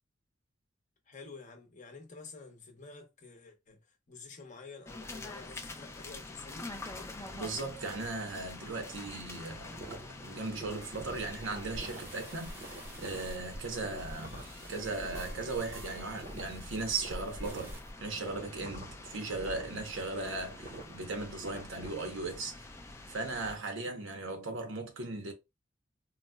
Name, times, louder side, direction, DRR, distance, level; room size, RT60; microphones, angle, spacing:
voice 1, 1.1-6.7, left 4 dB, 40° left, 0.7 m, -50 dB
sound 1, 4.9-23.6, left 2 dB, 15° left, 0.3 m, -47 dB
voice 2, 7.2-14.4 14.7-22.7 23.1-25.3, right 3 dB, 90° right, 0.9 m, -38 dB
sound 2, 9.6-21.9, right 1 dB, 45° right, 0.6 m, -49 dB
sound 3, 10.8-17.9, equal, 10° right, 0.7 m, -47 dB
4.0 x 2.1 x 2.2 m
head